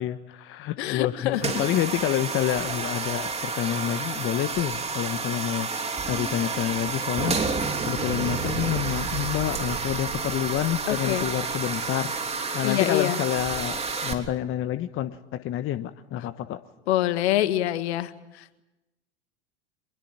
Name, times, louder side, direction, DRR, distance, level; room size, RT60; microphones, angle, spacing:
voice 1, 0.0-16.6, left 12 dB, 35° left, 11 dB, 1.1 m, -28 dB
voice 2, 0.8-1.4 10.9-11.3 12.6-13.2 16.9-18.6, left 14 dB, 65° left, 11 dB, 1.9 m, -26 dB
sound 1, 1.3-14.1, right 4 dB, 20° right, 3.3 m, -30 dB
Explosion, 8.0-12.3, right 7 dB, 70° right, 4.5 m, -37 dB
25.0 x 22.0 x 8.9 m, 0.97 s
hypercardioid pair, 95°, 35 cm